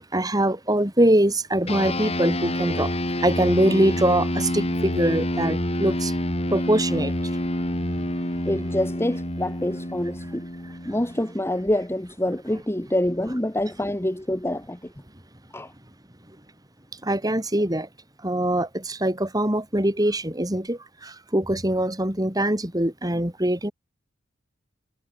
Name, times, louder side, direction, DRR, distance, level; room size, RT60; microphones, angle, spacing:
voice 1, 0.0-6.1 6.5-7.1 17.0-17.9 18.2-23.7, right 1 dB, 20° right, 4.6 m, -23 dB
sound 1, 1.7-11.4, left 1 dB, 30° left, 5.1 m, -28 dB
voice 2, 8.5-10.4 10.8-14.9 15.5-15.7, left 1 dB, 15° left, 1.3 m, -26 dB
head